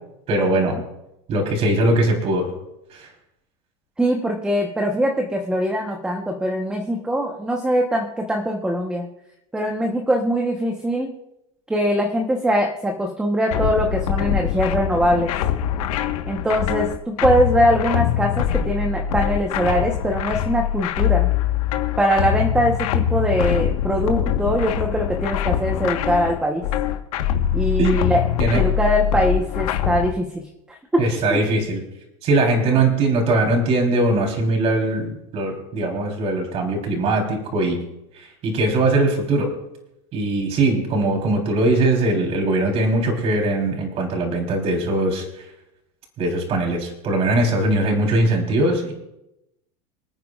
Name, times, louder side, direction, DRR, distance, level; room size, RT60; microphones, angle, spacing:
voice 1, 0.3-0.8 1.3-2.5 2.9-3.1 27.8-28.0 28.4-28.6 31.0-31.8 32.2-37.8 38.1-39.5 40.1-45.4 46.2-48.9, right 2 dB, 35° right, 1 dB, 3.7 m, -21 dB
voice 2, 4.0-9.1 9.5-11.2 11.7-15.3 16.3-21.3 22.0-26.6 27.5-30.4 30.7-31.0 31.3-31.4 32.6-32.9, equal, 5° right, 1 dB, 1.1 m, -22 dB
sound 1, 13.5-30.1, left 10 dB, 80° left, 1.4 m, -23 dB
27.5 x 9.2 x 2.5 m, 0.87 s
supercardioid pair, 155°, 18 cm